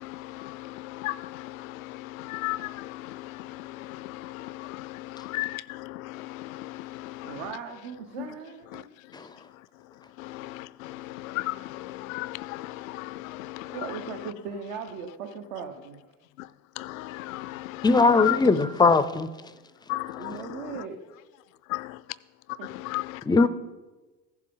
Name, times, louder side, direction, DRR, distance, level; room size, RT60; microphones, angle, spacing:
voice 1, 0.0-7.5 8.2-8.3 8.7-8.8 10.2-14.0 16.4-16.5 16.8-18.5 19.9-20.8 21.7-22.0 22.5-23.5, left 18 dB, 85° left, 0.5 m, -36 dB
voice 2, 7.2-8.9 13.7-16.1 20.2-21.0 22.6-22.7, right 6 dB, 75° right, 1.0 m, -38 dB
voice 3, 17.8-19.3 23.3-23.5, left 4 dB, 10° left, 0.4 m, -20 dB
15.0 x 7.5 x 3.8 m
supercardioid pair, 95°, 40 cm